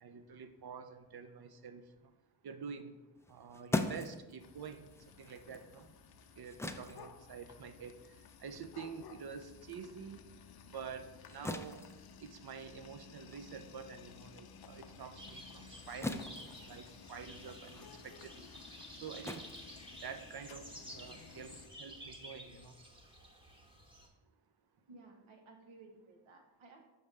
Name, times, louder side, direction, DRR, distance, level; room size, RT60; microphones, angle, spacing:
voice 1, 0.0-1.8 2.4-3.0 3.3-4.9 5.2-5.9 6.4-8.0 8.4-10.2 10.7-11.8 12.2-18.5 19.0-19.5 20.0-22.7, right 6 dB, 50° right, 9 dB, 0.6 m, -48 dB
sound 1, 3.2-10.0 10.3-20.5, left 2 dB, 5° left, 0.3 m, -44 dB
sound 2, 4.4-21.7, left 6 dB, 50° left, 0.6 m, -56 dB
sound 3, 15.2-24.1, equal, 10° right, 1.1 m, -53 dB
voice 2, 24.9-26.9, right 3 dB, 80° right, 3 dB, 1.2 m, -57 dB
6.9 x 5.1 x 3.2 m, 1.1 s
cardioid pair, 60°, 47 cm